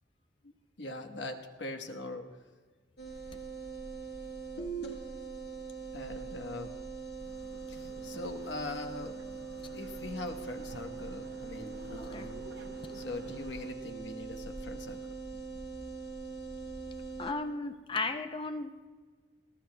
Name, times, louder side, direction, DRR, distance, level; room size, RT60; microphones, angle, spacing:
voice 1, 0.8-2.4 5.9-6.7 7.7-9.2 9.7-12.4 12.9-15.1, left 2 dB, 85° left, 5 dB, 1.1 m, -41 dB
sound 1, 3.0-17.3, right 4 dB, 65° left, 1.6 m, -42 dB
sound 2, 7.2-13.7, right 1 dB, 80° right, 0.9 m, -52 dB
voice 2, 12.0-12.3 17.2-18.9, left 3 dB, 30° left, 8 dB, 0.5 m, -35 dB
29.0 x 12.5 x 2.2 m, 1.4 s
head